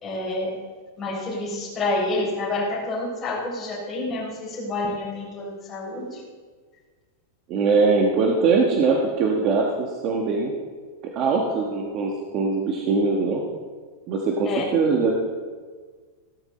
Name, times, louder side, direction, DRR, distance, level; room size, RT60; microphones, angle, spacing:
voice 1, 0.0-0.6 1.0-6.2 14.4-14.6, left 2 dB, 15° left, -6 dB, 4.1 m, -28 dB
voice 2, 7.5-10.5 11.1-13.4 14.1-15.2, right 4 dB, 30° right, 0 dB, 1.3 m, -22 dB
16.5 x 13.5 x 4.3 m, 1.5 s
supercardioid pair, 175°, 0 cm